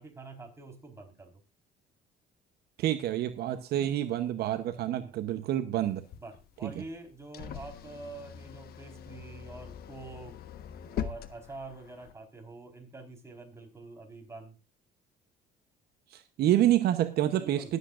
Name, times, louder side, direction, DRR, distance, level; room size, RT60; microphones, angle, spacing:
voice 1, 0.0-1.3 5.0-5.2 6.2-10.4 10.9-14.6 17.4-17.8, right 3 dB, 15° right, 2 dB, 4.5 m, -46 dB
voice 2, 2.8-6.0 6.6-6.7 16.1-17.8, right 12 dB, 70° right, 10 dB, 1.0 m, -28 dB
sound 1, 5.9-12.1, left 8 dB, 65° left, 1.3 m, -42 dB
22.0 x 8.2 x 2.5 m, 0.30 s
cardioid pair, 110°, 17 cm